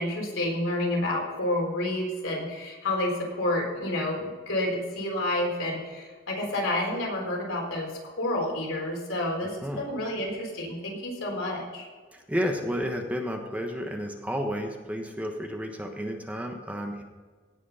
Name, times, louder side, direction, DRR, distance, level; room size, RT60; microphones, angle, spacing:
voice 1, 0.0-11.9, left 1 dB, 90° left, -1 dB, 4.0 m, -29 dB
voice 2, 12.1-17.0, equal, 5° right, 2 dB, 1.1 m, -31 dB
17.5 x 6.1 x 5.6 m, 1.4 s
head